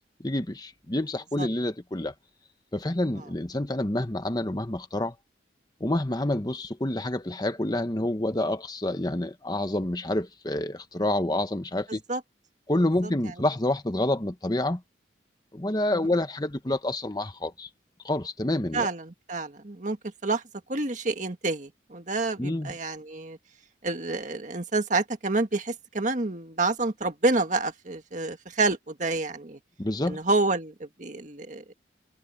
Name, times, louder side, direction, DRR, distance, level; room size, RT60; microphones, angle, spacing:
voice 1, 0.2-2.1 2.7-5.1 5.8-12.0 12.7-14.8 15.5-17.7 18.0-18.9 22.4-22.7 29.8-30.2, left 1 dB, 20° left, 1.1 m, -28 dB
voice 2, 11.9-12.2 15.9-16.0 18.7-20.0 20.2-20.4 20.7-23.4 23.8-29.6 30.1-31.7, right 3 dB, 45° right, 1.8 m, -28 dB
head